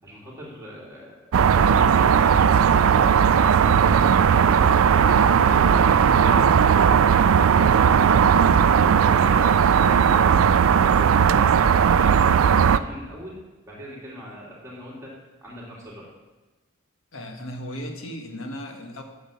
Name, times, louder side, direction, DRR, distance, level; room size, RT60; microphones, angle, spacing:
voice 1, 0.0-3.3 3.7-6.5 6.9-13.4 13.7-16.1, equal, 15° right, -6 dB, 3.0 m, -41 dB
sound 1, 1.3-12.8, right 7 dB, 75° right, 0.4 m, -17 dB
voice 2, 17.1-19.0, equal, 75° left, 5 dB, 1.4 m, -36 dB
9.1 x 6.5 x 7.3 m, 1.1 s
head